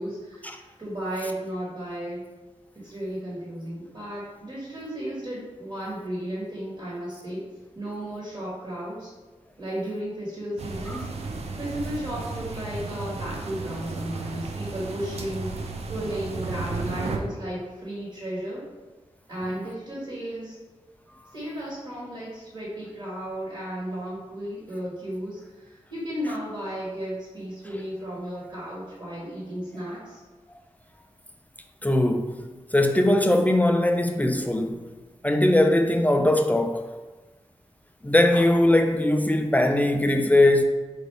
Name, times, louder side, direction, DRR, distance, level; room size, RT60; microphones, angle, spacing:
voice 1, 0.0-2.2 2.7-7.4 7.7-9.1 9.6-11.1 11.6-18.7 19.3-20.5 21.3-30.2, equal, 40° right, 1.4 m, -34 dB
sound 1, 10.6-17.2, right 3 dB, 60° right, 0.4 m, -34 dB
voice 2, 31.8-34.8 35.2-36.9 38.0-40.6, left 1 dB, 15° left, 0.3 m, -20 dB
4.3 x 2.4 x 3.3 m
cardioid pair, 65°, 12 cm